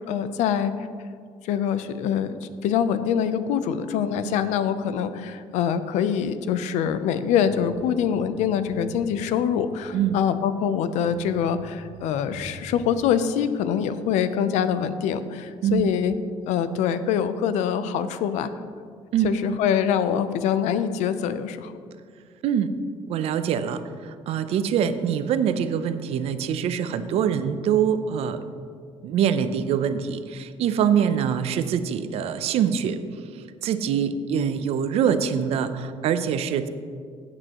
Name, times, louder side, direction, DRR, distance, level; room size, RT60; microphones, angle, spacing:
voice 1, 0.1-0.7 1.4-2.4 2.6-16.1 16.5-18.5 19.2-21.7, left 8 dB, 90° left, 12 dB, 0.6 m, -24 dB
sound 1, 7.4-9.5 9.8-9.9 10.5-10.6 11.0-12.9, right 2 dB, 25° right, 2.4 m, -44 dB
voice 2, 23.1-28.4 29.0-33.0 33.6-36.7, right 8 dB, 60° right, 11 dB, 0.6 m, -24 dB
14.0 x 8.8 x 3.0 m, 2.1 s
cardioid pair, 155°, 12 cm